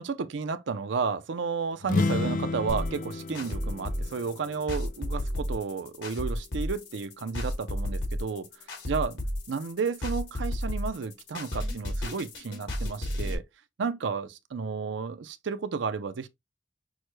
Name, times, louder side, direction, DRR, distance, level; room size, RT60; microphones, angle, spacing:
voice 1, 0.0-8.5 8.9-9.2 9.5-13.4 13.8-16.3, right 5 dB, 70° right, 0.5 m, -32 dB
sound 1, 1.8-5.5, left 3 dB, 45° left, 0.4 m, -32 dB
sound 2, 2.7-13.4, left 1 dB, 70° left, 1.8 m, -32 dB
6.2 x 2.2 x 3.1 m
head